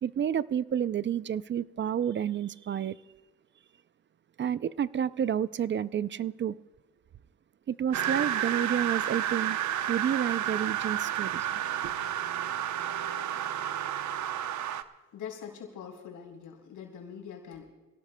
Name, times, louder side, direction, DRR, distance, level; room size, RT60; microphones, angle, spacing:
voice 1, 0.0-3.0 4.4-6.6 7.7-9.6 9.9-11.9, right 9 dB, 40° right, 0.4 m, -30 dB
sound 1, 7.9-14.8, right 10 dB, 70° right, 0.8 m, -31 dB
voice 2, 15.1-17.6, left 7 dB, 85° left, 4.1 m, -43 dB
26.5 x 17.5 x 2.2 m
cardioid pair, 90°, 30 cm